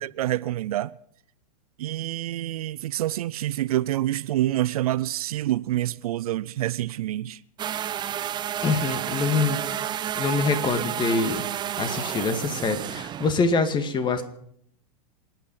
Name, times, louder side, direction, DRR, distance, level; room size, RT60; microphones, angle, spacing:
voice 1, 0.0-0.9 1.8-7.4, right 14 dB, 70° right, 0.5 m, -27 dB
sound 1, 7.6-13.3, right 10 dB, 20° right, 0.6 m, -30 dB
voice 2, 8.6-9.6 10.2-11.5 11.8-14.2, left 4 dB, 25° left, 2.0 m, -25 dB
27.5 x 9.3 x 5.6 m
hypercardioid pair, 110°, 20 cm